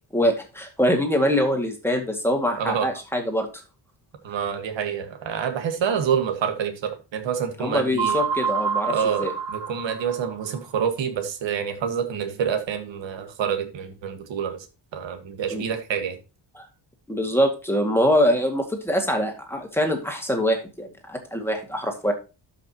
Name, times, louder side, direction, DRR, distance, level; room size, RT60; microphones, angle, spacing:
voice 1, 0.1-3.5 7.6-8.9 9.2-9.3 15.5-15.6 16.6-16.7 17.1-22.1, equal, 5° left, 2.1 m, -23 dB
voice 2, 2.6-2.9 4.2-8.2 8.9-14.7 14.9-16.2, right 7 dB, 75° right, 1.7 m, -27 dB
sound 1, 8.0-10.6, right 6 dB, 55° right, 5.7 m, -27 dB
12.5 x 5.8 x 2.9 m
wide cardioid pair, 150°, 45 cm